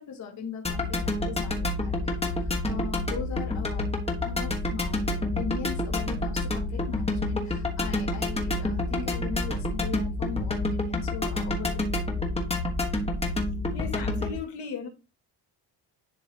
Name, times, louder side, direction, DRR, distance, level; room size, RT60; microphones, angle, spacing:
voice 1, 0.0-3.9 4.2-12.0, left 5 dB, 40° left, 1.6 m, -39 dB
sound 1, 0.6-14.4, left 2 dB, 15° left, 1.4 m, -28 dB
voice 2, 13.7-14.9, left 6 dB, 70° left, 2.0 m, -36 dB
10.5 x 3.8 x 2.8 m
cardioid pair, 140°, 42 cm